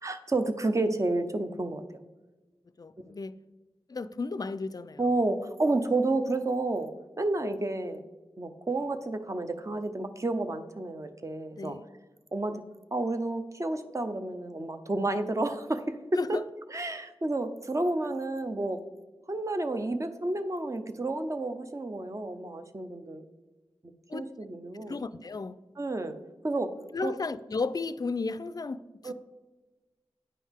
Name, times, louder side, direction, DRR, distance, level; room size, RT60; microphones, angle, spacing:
voice 1, 0.0-1.8 5.0-6.9 7.2-8.0 8.4-11.8 12.3-12.6 12.9-16.4 16.7-18.8 19.3-23.2 24.1-25.0 25.8-26.2 26.4-26.7 27.0-27.1 29.0-29.1, right 2 dB, 30° right, 0.6 m, -30 dB
voice 2, 2.8-3.4 3.9-5.0 11.5-11.8 16.2-16.4 24.1-24.2 24.7-25.6 26.9-29.1, left 4 dB, 40° left, 0.3 m, -34 dB
9.4 x 5.4 x 3.6 m
wide cardioid pair, 70°, 10 cm